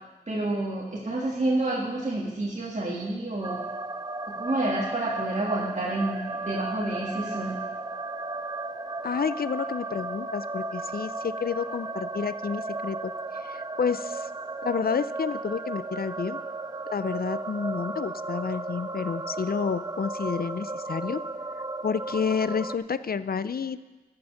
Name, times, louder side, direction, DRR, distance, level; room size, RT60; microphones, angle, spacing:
voice 1, 0.3-3.6 4.3-7.6, right 2 dB, 50° right, -4 dB, 1.7 m, -29 dB
sound 1, 3.4-22.8, right 3 dB, 25° right, 0.5 m, -35 dB
voice 2, 9.0-14.3 14.6-16.4 16.9-21.2 21.8-23.8, left 6 dB, 70° left, 14 dB, 0.4 m, -30 dB
13.5 x 6.9 x 5.7 m, 1.2 s
wide cardioid pair, 55°, 16 cm